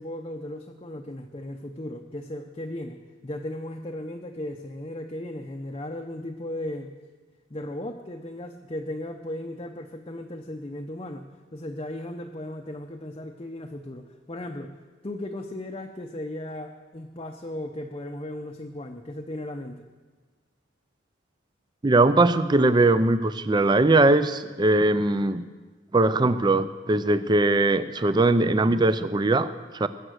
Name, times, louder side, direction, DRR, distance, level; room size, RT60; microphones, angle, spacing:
voice 1, 0.0-3.0 3.2-6.9 7.5-14.7 15.0-19.9, left 1 dB, 30° left, 3 dB, 0.6 m, -36 dB
voice 2, 21.8-25.4 25.9-29.9, right 2 dB, 20° right, 13 dB, 0.5 m, -21 dB
20.5 x 7.8 x 6.4 m, 1.4 s
head